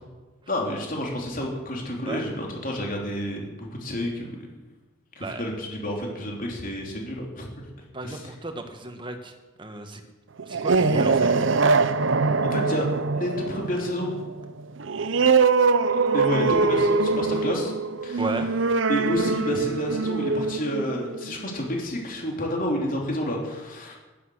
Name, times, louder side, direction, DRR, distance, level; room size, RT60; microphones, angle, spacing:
voice 1, 0.5-4.4 5.2-7.5 8.0-8.3 12.4-12.9 13.1-14.1 15.8-17.7 18.0-18.2 18.9-24.0, left 1 dB, 45° left, 0 dB, 3.5 m, -30 dB
voice 2, 7.9-9.3 9.6-10.0 10.5-11.3 18.2-18.5, right 2 dB, 25° right, 6 dB, 1.6 m, -33 dB
sound 1, 10.4-21.6, right 4 dB, 70° right, 0.7 m, -23 dB
15.0 x 12.0 x 6.5 m, 1.3 s
head